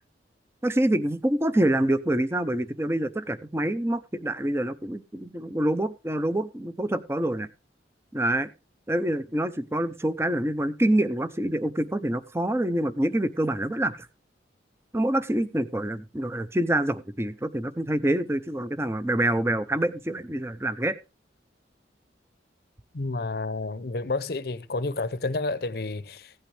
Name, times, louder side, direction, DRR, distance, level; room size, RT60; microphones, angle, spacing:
voice 1, 0.6-7.5 8.1-8.5 8.9-14.1 14.9-21.0, right 1 dB, 15° right, 0.6 m, -26 dB
voice 2, 22.9-26.3, left 3 dB, 55° left, 0.7 m, -30 dB
16.0 x 8.8 x 3.3 m
head